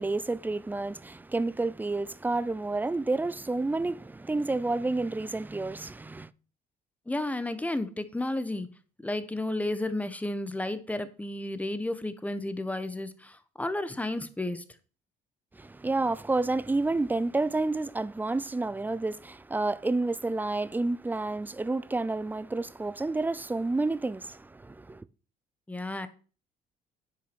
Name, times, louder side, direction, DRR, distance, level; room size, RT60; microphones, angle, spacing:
voice 1, 0.0-6.3 15.6-25.0, right 2 dB, 10° right, 0.5 m, -30 dB
voice 2, 7.1-8.7 9.0-14.6 25.7-26.1, left 1 dB, 10° left, 1.1 m, -32 dB
10.0 x 5.9 x 6.1 m
cardioid pair, 110°, 17 cm